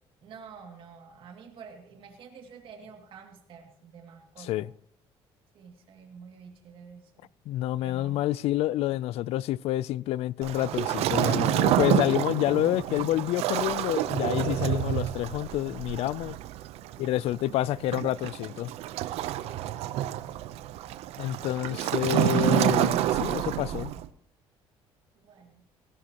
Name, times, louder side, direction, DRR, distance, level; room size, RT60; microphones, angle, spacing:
voice 1, 0.2-4.6 5.5-7.3 7.8-8.2 25.1-25.6, right 6 dB, 55° right, 2.4 m, -48 dB
voice 2, 4.4-4.7 7.5-16.4 17.0-18.7 21.2-23.9, left 14 dB, 75° left, 0.4 m, -28 dB
Waves surf, 10.4-24.1, right 12 dB, 80° right, 0.7 m, -28 dB
18.0 x 16.5 x 3.0 m
cardioid pair, 135°, 10 cm